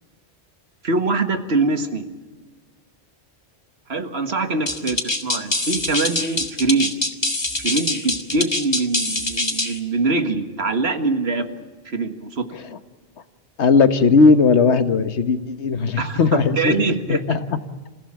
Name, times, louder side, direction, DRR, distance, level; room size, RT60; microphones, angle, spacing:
voice 1, 0.8-2.0 3.9-6.9 7.6-11.5 11.9-12.5 16.0-17.2, right 3 dB, 70° right, 8 dB, 1.9 m, -23 dB
sound 1, 4.7-9.8, left 2 dB, 25° left, 1.7 m, -24 dB
voice 2, 13.6-17.6, left 4 dB, 85° left, 11 dB, 1.5 m, -17 dB
27.5 x 15.5 x 8.8 m, 1.4 s
omnidirectional pair, 1.1 m